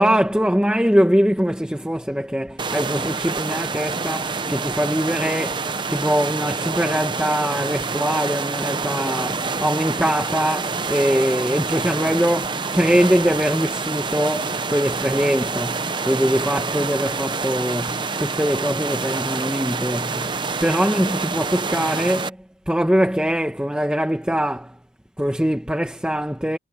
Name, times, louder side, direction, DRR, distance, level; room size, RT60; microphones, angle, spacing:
voice 1, 0.0-22.4 22.7-24.8 25.2-26.6, equal, 5° right, 1.2 m, -22 dB
sound 1, 2.6-22.3, right 4 dB, 25° right, 0.8 m, -27 dB
head